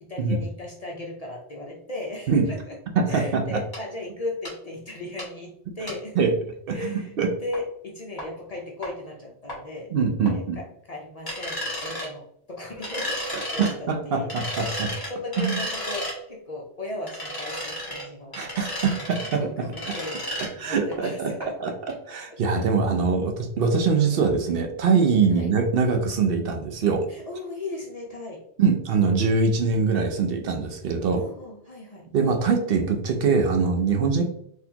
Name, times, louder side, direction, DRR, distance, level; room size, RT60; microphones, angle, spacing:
voice 1, 0.0-2.8 3.1-6.3 6.7-7.1 7.4-9.9 10.3-14.3 14.6-18.4 19.4-21.7 22.3-22.4 25.3-25.5 27.1-28.4 31.1-32.1, left 2 dB, 45° left, -1 dB, 0.6 m, -37 dB
voice 2, 3.0-3.6 6.2-6.3 6.7-7.3 9.9-10.6 13.3-14.9 15.4-15.6 18.3-20.0 20.6-21.7 22.1-27.1 28.6-31.2 32.1-34.2, right 5 dB, 65° right, 4 dB, 0.7 m, -23 dB
sound 1, 3.7-3.8 4.5-4.6 5.2-5.3 5.9-6.0 7.5-7.6 8.2-8.3 8.8-8.9 9.5-9.6 10.3-10.4 11.3-12.1 12.8-13.7 14.3-16.2 17.1-18.1 18.3-19.4 19.7-20.5 20.9-21.0 21.4-21.5 21.9-22.0, equal, 20° left, 1.2 m, -32 dB
4.0 x 2.7 x 2.8 m, 0.69 s
omnidirectional pair, 1.1 m